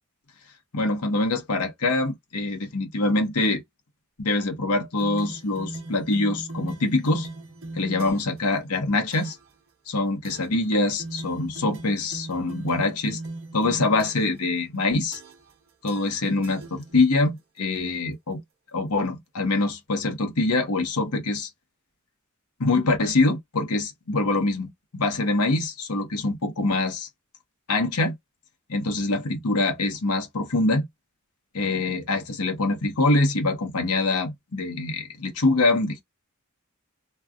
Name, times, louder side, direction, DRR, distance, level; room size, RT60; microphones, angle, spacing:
voice 1, 0.7-3.6 4.2-7.3 7.7-9.4 9.9-13.2 13.5-15.2 15.8-18.4 18.7-21.5 22.6-27.1 27.7-28.1 28.7-30.9 31.5-36.0, left 2 dB, 90° left, 1.0 m, -24 dB
sound 1, 5.0-8.4 9.1-9.5 10.2-10.6 11.0-14.4 15.1-15.6 15.9-17.2, right 2 dB, 60° right, 0.8 m, -39 dB
3.2 x 2.4 x 2.3 m
head